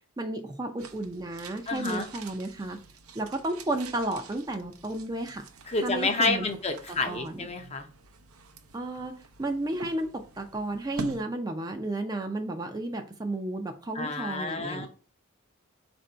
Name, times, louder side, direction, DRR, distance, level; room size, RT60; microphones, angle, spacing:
voice 1, 0.2-2.8 3.1-5.5 5.8-6.5 7.1-7.5 8.7-9.1 9.4-14.9, right 2 dB, 20° right, 5 dB, 0.4 m, -32 dB
sound 1, 0.8-11.2, right 5 dB, 80° right, 0.6 m, -46 dB
voice 2, 1.7-2.1 5.7-7.9 13.9-14.9, left 3 dB, 30° left, 5 dB, 0.6 m, -29 dB
4.5 x 2.6 x 4.3 m, 0.38 s
head